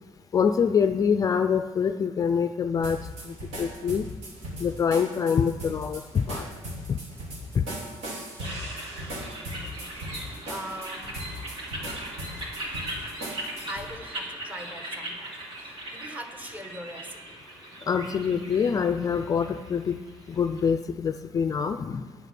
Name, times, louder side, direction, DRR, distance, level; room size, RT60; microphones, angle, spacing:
voice 1, 0.3-3.0 3.3-4.1 4.6-6.5 6.9-7.0 7.5-7.6 17.9-20.0 20.3-22.3, left 6 dB, 35° left, 9 dB, 0.4 m, -25 dB
sound 1, 2.8-13.9, equal, 75° right, 2.8 m, -38 dB
sound 2, 8.4-20.6, right 1 dB, 50° right, 2.7 m, -39 dB
voice 2, 9.6-11.3 13.7-17.5, equal, 15° right, 5 dB, 1.3 m, -41 dB
9.6 x 9.1 x 6.0 m, 1.4 s
cardioid pair, 125°, 11 cm